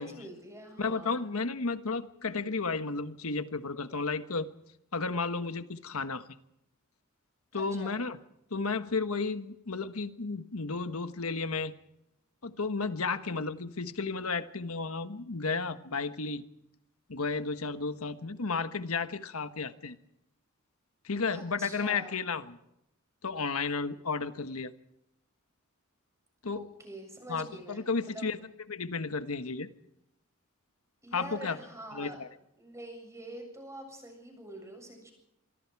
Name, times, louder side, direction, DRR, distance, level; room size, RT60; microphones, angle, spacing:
voice 1, 0.0-1.3 7.5-8.0 21.3-22.2 26.5-28.4 31.0-32.2 32.6-35.1, right 1 dB, 15° right, 3 dB, 7.4 m, -45 dB
voice 2, 0.8-4.5 4.9-6.2 7.5-8.2 8.5-11.7 12.4-16.4 17.1-20.0 21.0-22.6 23.2-24.7 26.4-26.7 27.3-28.4 28.7-29.7 31.1-31.6 31.9-32.3, left 4 dB, 80° left, 10 dB, 1.3 m, -33 dB
25.5 x 24.0 x 4.8 m, 0.82 s
head